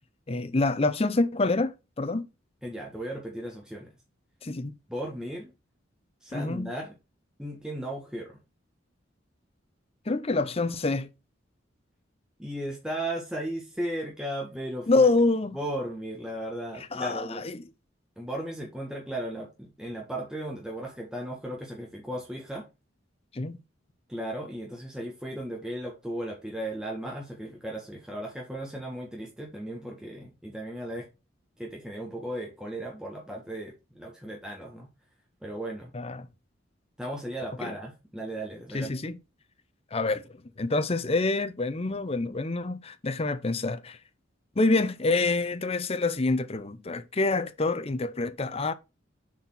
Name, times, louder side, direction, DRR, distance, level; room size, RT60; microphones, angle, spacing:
voice 1, 0.3-2.3 4.4-4.7 6.3-6.7 10.1-11.1 14.9-15.6 16.9-17.6 23.3-23.6 35.9-36.3 37.6-37.7 38.7-39.2 39.9-40.2 40.6-44.0 44.6-48.7, left 3 dB, 30° left, 0.7 m, -26 dB
voice 2, 2.6-3.9 4.9-5.5 6.2-6.9 7.4-8.4 12.4-15.1 15.5-17.4 18.2-22.7 24.1-31.1 31.6-34.9 35.4-35.9 37.0-38.9, right 1 dB, 5° right, 1.4 m, -36 dB
6.4 x 4.3 x 5.5 m
head